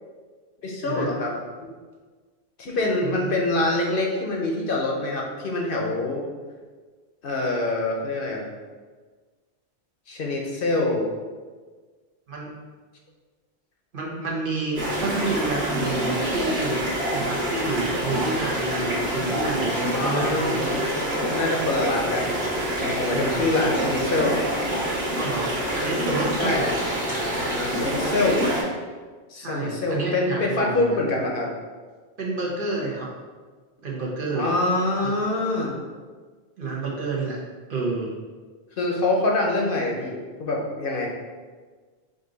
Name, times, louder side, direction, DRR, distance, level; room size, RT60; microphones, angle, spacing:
voice 1, 0.6-1.3 1.6-1.7 2.6-6.2 7.2-8.5 10.1-11.0 19.9-22.4 22.8-24.4 26.4-26.6 27.5-28.4 29.3-31.5 34.4-35.7 38.8-41.1, left 2 dB, 60° left, 0 dB, 0.9 m, -25 dB
voice 2, 3.0-3.3 12.3-12.5 13.9-16.8 17.1-20.6 23.1-23.5 25.1-26.7 29.4-31.0 32.2-33.1 33.8-34.5 35.0-35.1 36.6-37.4 37.7-38.1, right 3 dB, 55° right, -3 dB, 1.0 m, -29 dB
sound 1, 14.7-28.6, equal, 80° right, 1.6 m, -26 dB
5.2 x 2.5 x 3.9 m, 1.4 s
omnidirectional pair, 1.1 m